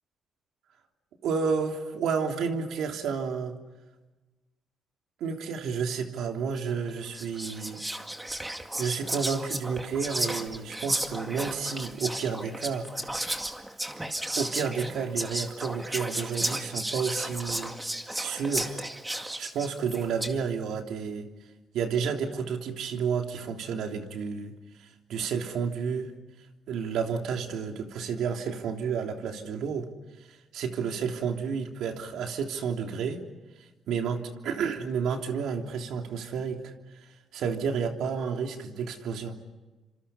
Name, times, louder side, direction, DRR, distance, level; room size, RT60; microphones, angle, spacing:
voice 1, 1.2-3.6 5.2-7.8 8.8-12.9 14.3-17.7 18.2-18.8 19.1-21.3 21.7-24.5 24.8-26.1 26.7-29.9 30.3-33.2 33.6-39.4, right 6 dB, 80° right, 3 dB, 3.2 m, -31 dB
Whispering, 6.6-6.8 7.1-20.4, right 1 dB, 10° right, 2.2 m, -34 dB
30.0 x 26.5 x 5.7 m, 1.1 s
cardioid pair, 90°, 0 cm